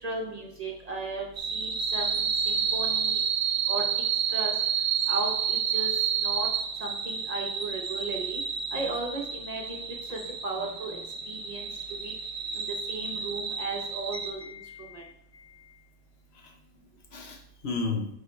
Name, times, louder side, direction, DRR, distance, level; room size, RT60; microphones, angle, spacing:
voice 1, 0.0-3.2 3.7-3.8 4.3-4.5 5.1-5.9 6.2-6.5 6.8-8.4 8.7-9.8 10.1-11.0 11.3-11.7 12.0-12.1 12.5-14.4 14.9-15.0, right 2 dB, 40° right, 0 dB, 0.7 m, -35 dB
sound 1, 1.4-14.3, right 7 dB, 70° right, 0.9 m, -30 dB
voice 2, 14.4-15.7 16.4-16.5 17.1-18.1, left 4 dB, 65° left, 4 dB, 0.9 m, -35 dB
8.5 x 3.7 x 3.1 m, 0.75 s
omnidirectional pair, 1.2 m